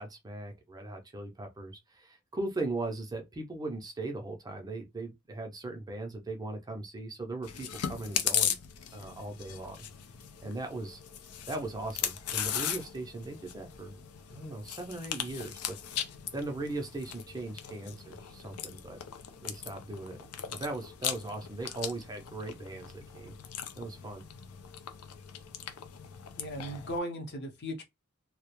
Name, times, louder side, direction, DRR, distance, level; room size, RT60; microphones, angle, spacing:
voice 1, 0.0-8.6 8.9-9.9 10.4-11.0 11.5-14.0 14.3-15.8 16.3-19.0 19.4-20.2 20.5-23.4 23.8-24.2, right 2 dB, 20° right, 0.4 m, -39 dB
Chewing mastication, 7.4-27.0, left 9 dB, 85° left, 0.4 m, -38 dB
voice 2, 26.4-27.8, equal, 50° left, 0.7 m, -37 dB
2.3 x 2.0 x 2.9 m
head